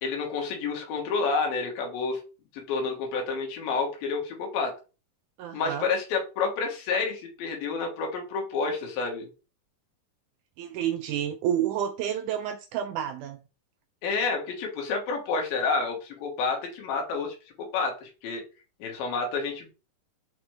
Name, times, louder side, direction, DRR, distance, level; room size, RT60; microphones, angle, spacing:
voice 1, 0.0-2.2 2.7-4.7 5.5-9.3 14.0-18.4 18.8-19.7, left 4 dB, 85° left, 3.3 m, -29 dB
voice 2, 5.4-5.9 10.6-13.4, right 10 dB, 85° right, 1.8 m, -29 dB
5.8 x 5.1 x 3.3 m
omnidirectional pair, 4.1 m